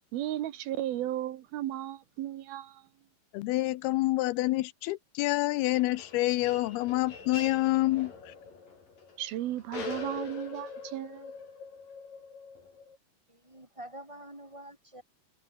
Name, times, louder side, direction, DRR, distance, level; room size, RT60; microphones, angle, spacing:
voice 1, 0.1-2.8 9.2-11.3, right 13 dB, 75° right, 3.0 m, -35 dB
voice 2, 3.3-8.3, left 18 dB, 85° left, 2.7 m, -28 dB
sound 1, 5.7-13.0, left 5 dB, 60° left, 7.1 m, -43 dB
voice 3, 13.3-15.0, right 1 dB, 5° right, 4.9 m, -46 dB
omnidirectional pair, 4.4 m